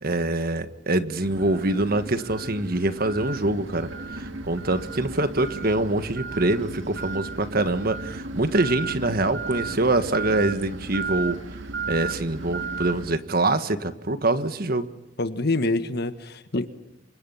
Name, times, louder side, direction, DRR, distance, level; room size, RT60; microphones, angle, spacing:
voice 1, 0.0-11.4 11.9-14.9, right 2 dB, 50° right, 10 dB, 1.5 m, -25 dB
sound 1, 1.2-13.1, right 4 dB, 85° right, 1.8 m, -34 dB
voice 2, 15.2-16.7, left 2 dB, 60° left, 10 dB, 1.5 m, -26 dB
28.5 x 25.0 x 5.8 m, 0.92 s
head